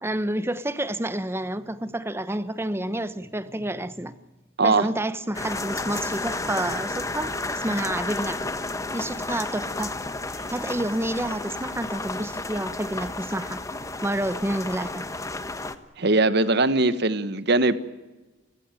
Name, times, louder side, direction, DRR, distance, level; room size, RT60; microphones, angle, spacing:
voice 1, 0.0-4.1 4.6-8.5 8.9-9.9 10.5-13.6 14.0-15.0, right 1 dB, 15° right, 0.9 m, -29 dB
sound 1, 5.3-15.7, left 2 dB, 15° left, 1.2 m, -32 dB
voice 2, 16.0-17.7, right 2 dB, 60° right, 1.3 m, -20 dB
30.0 x 15.0 x 9.1 m
head